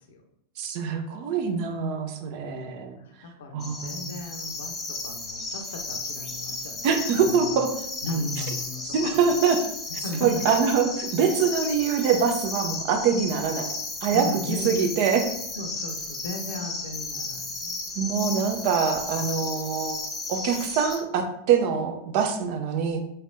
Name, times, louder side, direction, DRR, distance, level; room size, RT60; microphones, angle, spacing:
voice 1, 0.6-3.0 3.5-4.1 6.8-7.7 8.9-9.6 9.9-13.7 14.0-15.3 18.0-20.0 20.3-23.0, right 6 dB, 45° right, 6 dB, 0.5 m, -24 dB
voice 2, 2.3-2.8 3.2-6.9 7.1-7.6 8.0-9.2 10.0-10.3 11.3-11.4 14.1-14.8 15.6-17.8, left 1 dB, 60° left, 4 dB, 0.6 m, -36 dB
sound 1, 3.6-21.0, left 3 dB, 15° left, 0.9 m, -34 dB
4.2 x 3.2 x 2.6 m, 0.78 s
figure-of-eight pair, 90°, 0 cm